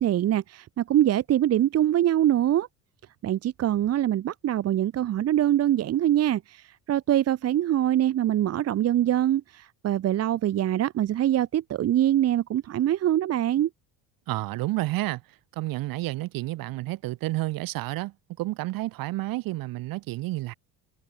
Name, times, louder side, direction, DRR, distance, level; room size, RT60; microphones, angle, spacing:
voice 1, 0.0-2.7 3.2-13.7, right 12 dB, 40° right, 1.2 m, -24 dB
voice 2, 14.3-15.2 15.6-20.5, right 18 dB, 65° right, 4.6 m, -30 dB
cardioid pair, 130°, 36 cm